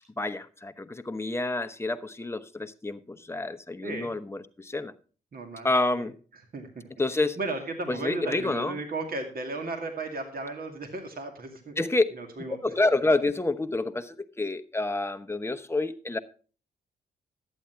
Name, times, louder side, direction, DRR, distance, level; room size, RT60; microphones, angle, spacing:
voice 1, 0.2-4.9 5.6-6.2 7.0-7.4 7.9-8.8 11.8-12.0 12.5-16.2, left 2 dB, 15° left, 0.9 m, -28 dB
voice 2, 3.8-4.1 5.3-5.7 6.0-6.1 6.5-6.9 7.4-11.7 12.1-12.6, right 3 dB, 55° right, 2.2 m, -35 dB
11.5 x 8.3 x 4.4 m
supercardioid pair, 50°, 18 cm